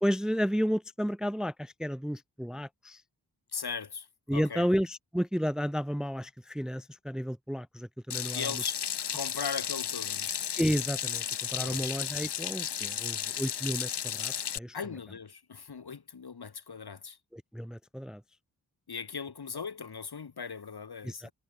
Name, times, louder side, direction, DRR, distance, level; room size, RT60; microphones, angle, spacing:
voice 1, 0.0-3.0 4.3-8.5 10.6-14.7 17.3-18.2 21.0-21.3, equal, ahead, 0.7 m, -32 dB
voice 2, 3.5-4.7 8.3-8.8 9.1-10.3 11.6-12.0 14.7-17.2 18.9-21.3, left 6 dB, 70° left, 4.7 m, -39 dB
Water tap faucet / Sink (filling or washing), 8.1-14.6, left 8 dB, 90° left, 2.1 m, -34 dB
cardioid pair, 45°, 40 cm